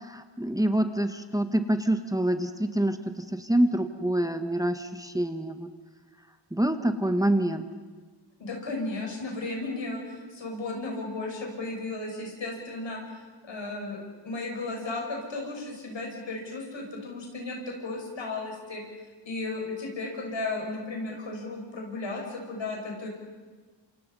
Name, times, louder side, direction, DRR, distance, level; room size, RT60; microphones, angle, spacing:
voice 1, 0.1-3.0 3.4-5.7 6.5-7.6, right 1 dB, 10° right, 8 dB, 1.5 m, -26 dB
voice 2, 8.4-18.8 19.2-23.1, left 2 dB, 85° left, 1 dB, 6.3 m, -35 dB
28.0 x 26.5 x 5.6 m, 1.4 s
cardioid pair, 65°, 44 cm